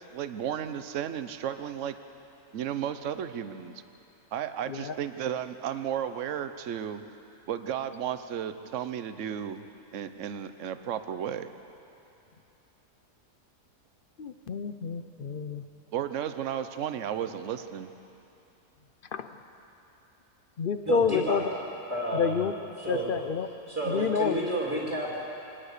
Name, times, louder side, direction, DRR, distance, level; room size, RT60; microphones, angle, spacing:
voice 1, 0.0-1.9 2.5-3.8 4.3-7.0 7.5-9.7 9.9-11.5 15.9-17.9, right 9 dB, 55° right, 10 dB, 1.1 m, -33 dB
voice 2, 14.2-15.6 19.1-19.3 20.6-21.4 22.1-22.5 22.9-23.5 23.9-24.4, left 6 dB, 55° left, 10 dB, 0.6 m, -28 dB
voice 3, 20.8-21.4 21.9-22.4 22.8-23.1 23.7-25.2, right 1 dB, 10° right, -4 dB, 2.9 m, -30 dB
24.0 x 19.0 x 6.7 m, 2.9 s
omnidirectional pair, 1.7 m